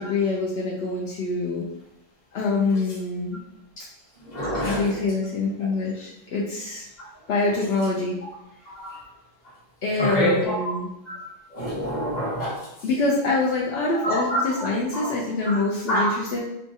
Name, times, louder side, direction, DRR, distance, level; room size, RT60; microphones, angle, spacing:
voice 1, 0.0-1.7 2.3-3.4 4.6-6.9 7.3-8.2 9.8-10.9 12.8-16.4, left 3 dB, 75° left, -4 dB, 0.9 m, -25 dB
voice 2, 4.2-4.9 5.6-5.7 8.7-9.0 9.9-10.7 11.1-11.2 11.5-12.7 14.0-14.4 14.9-15.1 15.5-15.6 15.9-16.1, equal, 45° left, -6 dB, 1.3 m, -26 dB
4.0 x 2.3 x 2.7 m, 0.85 s
omnidirectional pair, 1.1 m